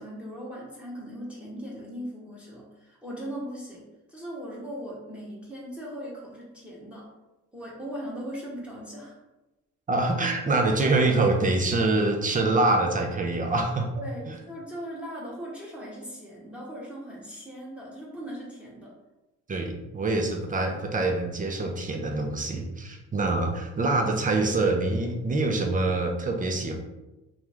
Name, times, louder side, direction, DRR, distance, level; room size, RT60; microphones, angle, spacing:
voice 1, 0.0-3.8 4.1-7.1 7.5-9.1 13.9-18.9, equal, 5° right, -5 dB, 1.0 m, -39 dB
voice 2, 9.9-13.9 14.3-14.4 19.5-26.8, right 2 dB, 25° right, 3 dB, 0.5 m, -25 dB
2.9 x 2.4 x 3.4 m, 1.0 s
cardioid pair, 90°, 30 cm